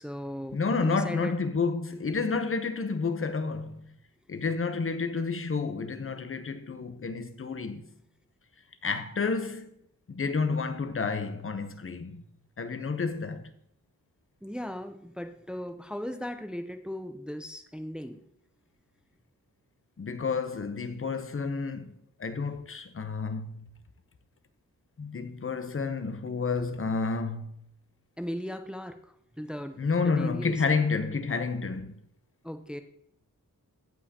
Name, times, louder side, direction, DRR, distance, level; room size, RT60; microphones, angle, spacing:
voice 1, 0.0-1.3 14.4-18.2 28.2-30.5 32.4-32.8, equal, 5° right, 0.6 m, -37 dB
voice 2, 0.5-3.9 4.3-7.8 8.8-9.7 10.1-12.2 12.6-13.5 20.0-23.7 25.0-27.6 29.8-31.9, left 4 dB, 40° left, 0.9 m, -30 dB
16.5 x 5.5 x 2.9 m
wide cardioid pair, 120°, 35 cm